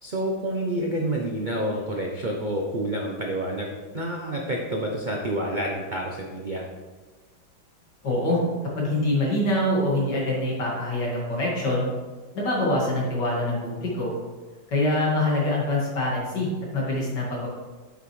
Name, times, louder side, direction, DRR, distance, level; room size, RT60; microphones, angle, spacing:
voice 1, 0.0-6.6, right 1 dB, 90° right, 0 dB, 0.4 m, -28 dB
voice 2, 8.0-8.4 8.8-11.9 12.3-14.1 14.7-16.5 16.7-17.5, left 1 dB, 65° left, -4 dB, 2.7 m, -24 dB
9.1 x 6.0 x 3.2 m, 1.3 s
omnidirectional pair, 2.0 m